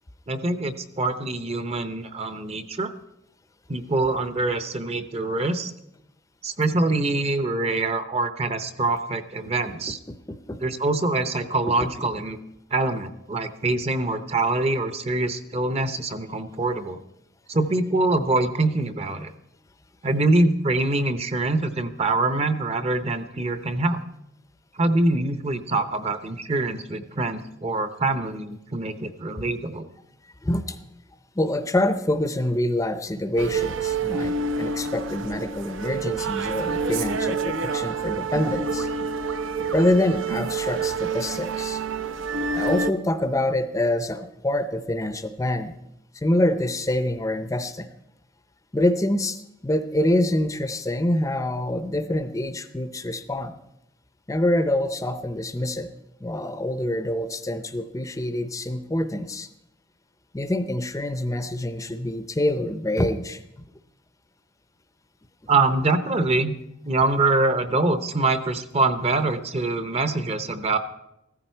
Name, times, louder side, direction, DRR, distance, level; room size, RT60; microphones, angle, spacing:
voice 1, 0.3-2.9 3.7-5.7 6.4-10.0 10.6-12.4 12.7-17.0 17.5-19.3 20.0-24.0 24.7-29.9 65.5-66.5 66.9-70.8, right 2 dB, 30° right, 11 dB, 0.8 m, -24 dB
voice 2, 10.3-10.6 30.4-30.8 31.4-38.9 39.7-41.8 42.5-45.7 46.1-47.9 48.7-53.5 54.3-55.9 56.2-59.5 60.3-63.4, left 1 dB, 15° left, 10 dB, 0.6 m, -25 dB
sound 1, 33.4-42.9, right 4 dB, 75° right, 0.7 m, -28 dB
15.0 x 14.0 x 4.5 m, 0.84 s
head